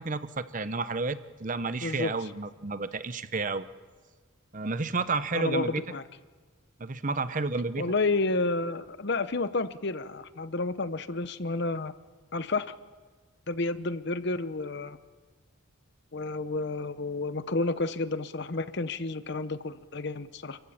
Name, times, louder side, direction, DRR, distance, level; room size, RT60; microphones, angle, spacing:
voice 1, 0.0-3.7 4.5-5.8 6.8-7.8, right 3 dB, 40° right, 13 dB, 0.8 m, -31 dB
voice 2, 1.8-2.1 5.3-6.0 7.8-11.9 12.3-12.7 13.5-15.0 16.1-20.6, left 3 dB, 55° left, 13 dB, 0.9 m, -30 dB
29.0 x 15.0 x 8.7 m, 1.4 s
head